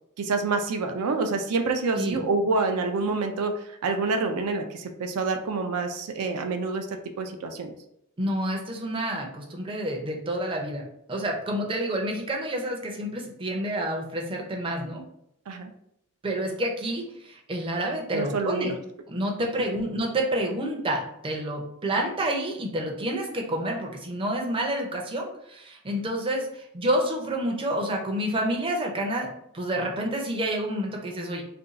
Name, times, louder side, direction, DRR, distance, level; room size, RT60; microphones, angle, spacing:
voice 1, 0.2-6.9 7.2-7.7 15.5-15.7 18.1-18.8 21.9-22.0, right 3 dB, 75° right, 5 dB, 0.4 m, -27 dB
voice 2, 8.2-10.8 11.1-15.0 16.2-18.7 19.1-31.4, right 1 dB, 25° right, 0 dB, 0.5 m, -29 dB
2.5 x 2.2 x 3.9 m, 0.75 s
head